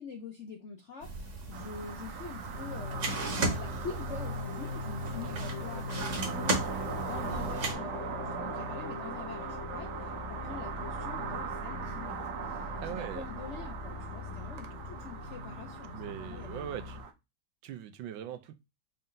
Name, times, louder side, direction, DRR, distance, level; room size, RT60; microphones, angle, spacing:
voice 1, 0.0-3.1 3.3-6.7 7.0-17.0, left 5 dB, 70° left, 0.6 m, -45 dB
sound 1, 1.0-7.7, right 3 dB, 45° right, 1.2 m, -36 dB
sound 2, 1.5-17.1, right 7 dB, 65° right, 1.2 m, -40 dB
sound 3, 2.5-17.0, left 4 dB, 45° left, 1.4 m, -42 dB
voice 2, 12.8-13.2 15.9-17.0 17.6-18.6, right 10 dB, 80° right, 1.4 m, -41 dB
5.4 x 2.7 x 3.7 m
omnidirectional pair, 2.1 m